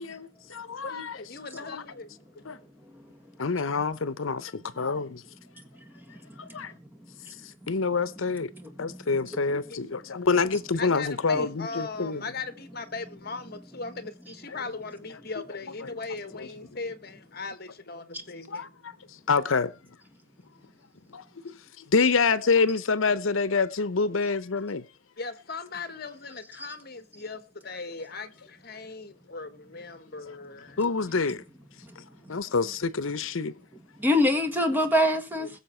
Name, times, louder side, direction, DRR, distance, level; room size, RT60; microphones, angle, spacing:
voice 1, 0.0-1.2 1.5-1.8 2.4-2.6 3.4-5.2 6.4-6.7 7.7-8.5 8.8-12.2 14.5-14.6 16.4-16.5 18.5-18.9 19.3-19.7 21.1-24.9 30.8-31.4 32.3-33.5, left 4 dB, 75° left, 0.8 m, -27 dB
voice 2, 0.8-2.3 9.7-9.8 10.8-19.1 25.2-30.8, left 4 dB, 45° left, 1.3 m, -39 dB
voice 3, 8.5-9.0 34.0-35.5, left 1 dB, 10° right, 1.6 m, -24 dB
21.5 x 7.1 x 4.4 m
head